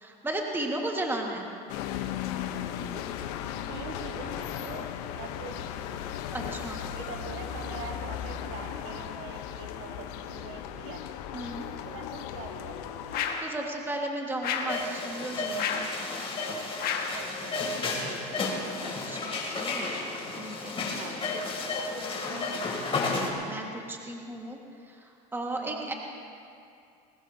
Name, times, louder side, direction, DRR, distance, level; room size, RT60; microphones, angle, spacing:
voice 1, 0.0-1.5 6.3-6.8 11.3-11.7 13.1-15.9 19.1-19.9 20.4-20.9 23.4-24.6 24.9-25.9, right 1 dB, 10° right, 0 dB, 1.7 m, -35 dB
sound 1, 1.7-13.3, left 10 dB, 75° left, 1.0 m, -36 dB
voice 2, 3.7-6.0 6.9-11.1 11.6-13.0 17.1-18.5 20.9-21.2 22.0-22.5 25.6-25.9, right 6 dB, 60° right, 3 dB, 1.8 m, -44 dB
sound 2, 13.1-13.5 14.4-14.8 15.6-16.0 16.8-17.2, left 7 dB, 50° left, 1.7 m, -31 dB
sound 3, 14.7-23.3, left 3 dB, 25° left, 2.8 m, -32 dB
21.0 x 19.0 x 2.8 m, 2.5 s
supercardioid pair, 105°, 20 cm